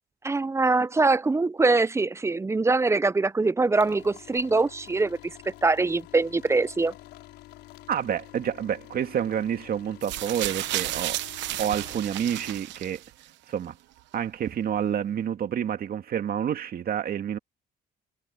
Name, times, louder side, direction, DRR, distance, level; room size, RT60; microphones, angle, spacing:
voice 1, 0.2-5.2 5.6-6.9, right 3 dB, 15° right, 0.5 m, -23 dB
sound 1, 3.7-12.6, left 15 dB, 90° left, 5.1 m, -48 dB
voice 2, 7.9-11.2 11.6-13.0 13.5-13.8 14.1-17.4, right 9 dB, 55° right, 2.0 m, -28 dB
sound 2, 10.0-13.3 14.1-14.2, right 15 dB, 85° right, 1.0 m, -32 dB
cardioid pair, 100°, 18 cm